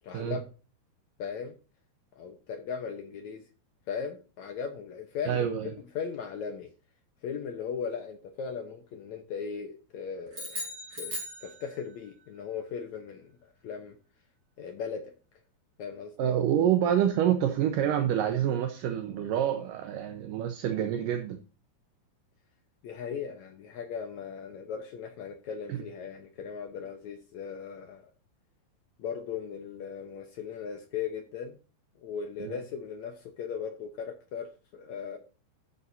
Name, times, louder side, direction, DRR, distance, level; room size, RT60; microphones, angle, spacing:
voice 1, 0.0-0.4 1.2-1.5 2.1-3.4 3.9-6.7 7.2-10.7 11.0-11.1 11.4-14.0 14.6-15.1 15.8-16.3 22.8-28.1 29.0-31.6 32.0-35.2, left 6 dB, 75° left, 5 dB, 1.7 m, -38 dB
voice 2, 5.3-5.7 16.2-21.4 32.4-32.6, right 10 dB, 70° right, 6 dB, 2.2 m, -27 dB
sound 1, 10.3-12.1, equal, 20° right, 5.0 m, -38 dB
12.5 x 7.8 x 2.7 m, 0.35 s
omnidirectional pair, 4.6 m